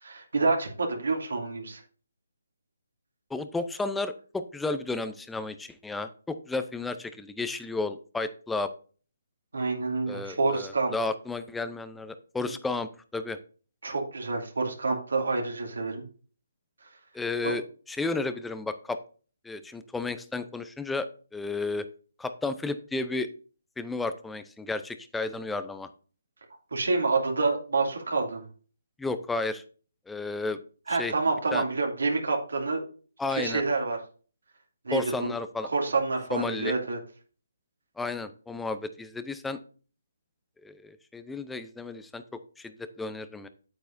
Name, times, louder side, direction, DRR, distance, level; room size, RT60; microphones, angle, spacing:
voice 1, 0.0-1.8 9.5-10.9 13.8-16.0 17.4-17.5 26.7-28.4 30.9-32.8 33.3-34.0 34.8-35.3 35.7-37.0, right 3 dB, 80° right, 0 dB, 2.4 m, -28 dB
voice 2, 3.3-8.7 10.1-13.4 17.1-19.0 19.4-21.1 21.3-21.8 22.2-23.3 23.8-25.9 29.0-29.6 30.1-30.6 30.9-31.1 31.5-31.6 33.2-33.6 34.9-35.7 36.3-36.7 38.0-39.6 40.6-42.2 42.6-43.5, left 3 dB, 5° left, 11 dB, 0.5 m, -32 dB
8.6 x 8.1 x 2.6 m, 0.39 s
hypercardioid pair, 150°, 0 cm